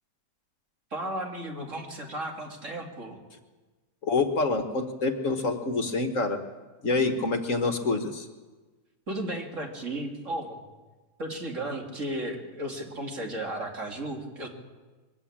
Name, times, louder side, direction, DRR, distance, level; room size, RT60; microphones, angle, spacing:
voice 1, 0.9-3.2 9.1-10.6 11.2-14.5, right 1 dB, 50° right, 2 dB, 2.9 m, -34 dB
voice 2, 4.0-6.4 6.8-8.3, left 3 dB, 55° left, 6 dB, 1.7 m, -26 dB
22.5 x 15.0 x 8.7 m, 1.3 s
omnidirectional pair, 1.7 m